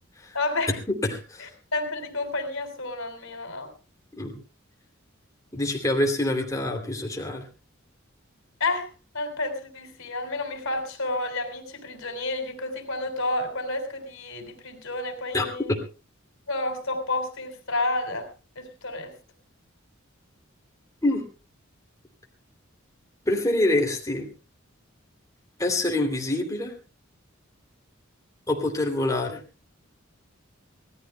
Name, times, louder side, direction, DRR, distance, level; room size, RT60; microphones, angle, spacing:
voice 1, 0.3-0.8 1.4-3.7 8.6-8.9 9.1-15.7 16.5-18.3 18.6-19.1, left 2 dB, 80° left, 7 dB, 3.7 m, -30 dB
voice 2, 0.9-1.5 4.1-4.3 5.5-7.5 15.3-15.8 21.0-21.2 23.3-24.3 25.6-26.8 28.5-29.4, left 1 dB, 15° left, 1 dB, 2.9 m, -26 dB
25.5 x 17.5 x 2.2 m, 0.33 s
head